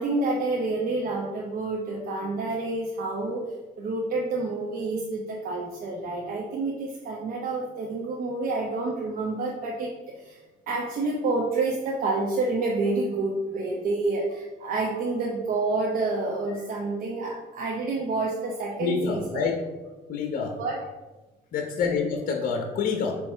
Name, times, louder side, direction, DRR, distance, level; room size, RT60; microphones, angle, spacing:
voice 1, 0.0-3.5 3.8-10.4 10.7-19.5 20.6-20.8, right 3 dB, 60° right, -2 dB, 1.0 m, -28 dB
voice 2, 18.8-19.5 20.1-20.5 21.5-23.2, left 5 dB, 55° left, 3 dB, 1.0 m, -27 dB
7.5 x 3.2 x 4.4 m, 1.2 s
cardioid pair, 110°, 17 cm